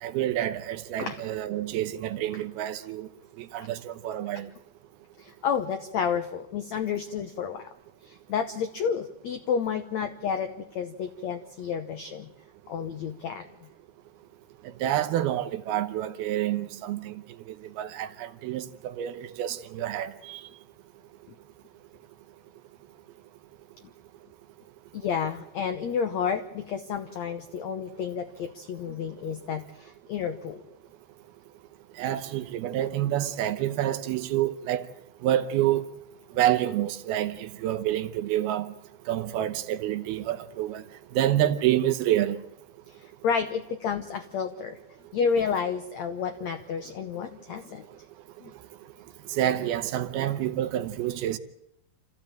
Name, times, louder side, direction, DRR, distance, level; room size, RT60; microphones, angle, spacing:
voice 1, 0.0-3.1 3.5-4.5 14.8-17.2 17.8-20.4 32.0-34.9 35.2-35.8 36.4-38.7 39.1-40.8 41.1-42.4 49.3-51.4, right 12 dB, 75° right, 2.8 m, -28 dB
voice 2, 5.2-7.7 8.0-12.3 12.7-13.5 24.9-30.6 43.0-44.8 45.1-47.8 48.4-48.5, left 6 dB, 85° left, 1.5 m, -30 dB
27.5 x 14.5 x 9.0 m
omnidirectional pair, 4.6 m